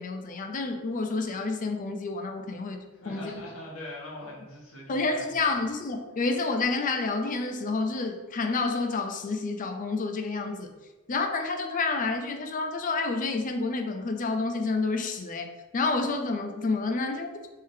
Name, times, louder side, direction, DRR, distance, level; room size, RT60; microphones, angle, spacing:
voice 1, 0.0-2.8 3.1-3.3 4.9-10.7 11.1-17.5, left 3 dB, 40° left, 5 dB, 0.4 m, -29 dB
voice 2, 2.9-5.3, left 1 dB, 90° left, -5 dB, 1.3 m, -42 dB
3.6 x 3.5 x 2.7 m, 1.1 s
head